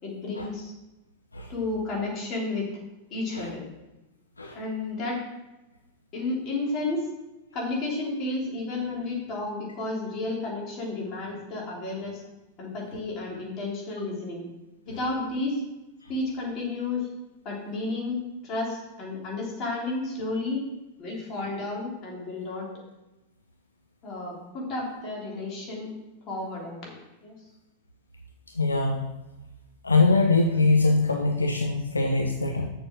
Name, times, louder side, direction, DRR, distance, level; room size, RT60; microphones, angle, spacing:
voice 1, 0.0-0.7 1.5-2.7 3.1-3.6 4.5-5.2 6.1-7.1 7.5-12.2 12.6-14.4 14.8-15.6 16.1-17.1 17.4-18.2 18.4-20.6 21.0-22.7 24.0-25.9 26.3-27.3, left 2 dB, 35° left, -3 dB, 3.4 m, -32 dB
voice 2, 28.6-29.1 29.8-32.7, left 3 dB, 80° left, 3 dB, 0.7 m, -22 dB
7.0 x 6.4 x 6.1 m, 1.0 s
figure-of-eight pair, 90°, 0 cm